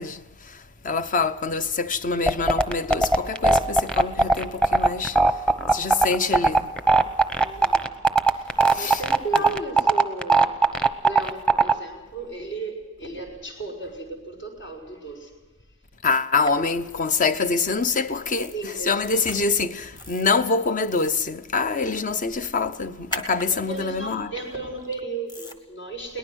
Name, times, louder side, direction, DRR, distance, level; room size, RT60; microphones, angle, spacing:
voice 1, 0.0-6.7 8.7-9.0 16.0-24.3, left 4 dB, 40° left, 0.8 m, -25 dB
sound 1, 2.3-11.7, right 3 dB, 5° left, 0.9 m, -17 dB
voice 2, 7.4-7.9 8.3-10.5 11.0-15.3 18.5-19.2 23.7-26.2, right 2 dB, 65° left, 5.5 m, -35 dB
sound 2, 16.4-16.5 18.2-18.5 19.0-19.4 20.0-20.3 20.8-21.2 23.1-23.5 25.3-25.6, left 1 dB, 20° left, 1.6 m, -36 dB
22.0 x 19.0 x 6.3 m
head